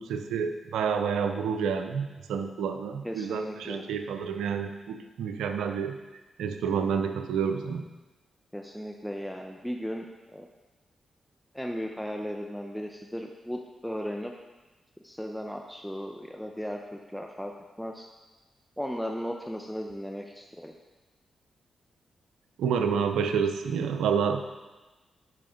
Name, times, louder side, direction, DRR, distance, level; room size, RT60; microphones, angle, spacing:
voice 1, 0.0-6.0 6.4-7.8 22.6-24.4, right 6 dB, 80° right, 7 dB, 0.6 m, -29 dB
voice 2, 3.0-3.8 8.5-10.1 10.3-10.5 11.5-14.3 15.0-17.5 17.8-18.1 18.8-20.7, equal, 5° left, 2 dB, 0.8 m, -36 dB
10.5 x 5.7 x 3.8 m, 1.1 s
supercardioid pair, 40°, 0 cm